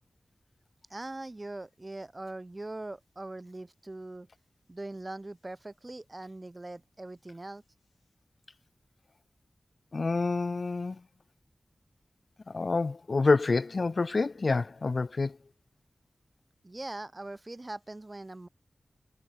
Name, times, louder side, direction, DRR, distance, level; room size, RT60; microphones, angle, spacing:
voice 1, 0.9-4.3 4.7-7.6 16.6-18.5, right 2 dB, 25° right, 7.4 m, -41 dB
voice 2, 9.9-11.0 12.5-15.4, left 3 dB, 50° left, 1.0 m, -27 dB
wide cardioid pair, 100°, 0 cm